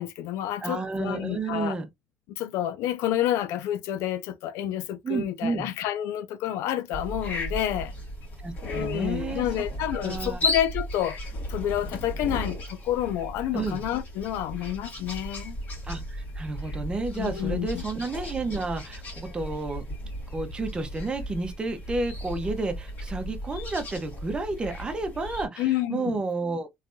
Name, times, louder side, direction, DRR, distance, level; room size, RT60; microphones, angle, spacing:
voice 1, 0.0-1.8 2.4-7.9 8.6-11.2 11.5-15.6 17.1-17.8 25.6-26.2, left 12 dB, 85° left, 0.5 m, -29 dB
voice 2, 0.6-1.9 5.0-5.7 8.4-9.4 9.9-10.4 13.5-13.8 15.9-19.8 20.3-26.8, right 3 dB, 20° right, 0.8 m, -31 dB
sound 1, 6.9-25.5, left 1 dB, 40° left, 2.1 m, -35 dB
3.3 x 3.2 x 2.6 m
cardioid pair, 145°, 5 cm